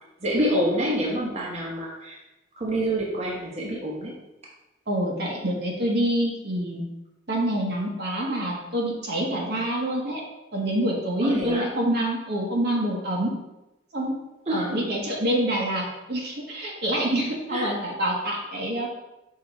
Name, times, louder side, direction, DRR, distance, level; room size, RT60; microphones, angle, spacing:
voice 1, 0.2-2.2 2.6-4.1 11.2-11.7 14.5-14.8 17.5-17.7, equal, 35° right, -4 dB, 1.2 m, -27 dB
voice 2, 4.9-6.8 7.3-10.2 10.5-13.3 13.9-14.2 14.5-18.9, right 1 dB, 55° right, -2 dB, 1.3 m, -26 dB
5.8 x 3.8 x 4.7 m, 0.96 s
head